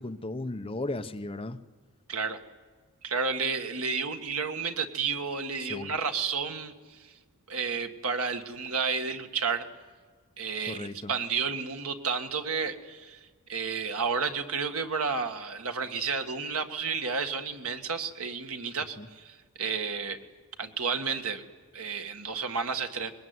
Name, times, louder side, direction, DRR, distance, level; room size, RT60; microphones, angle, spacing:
voice 1, 0.0-1.6 5.7-5.9 10.7-11.1 19.0-19.1, left 2 dB, 25° left, 9 dB, 0.9 m, -35 dB
voice 2, 2.1-2.4 3.0-7.2 7.5-9.7 10.4-20.2 20.6-21.4 21.7-23.1, right 5 dB, 70° right, 6 dB, 1.7 m, -31 dB
23.0 x 21.0 x 9.6 m, 1.5 s
head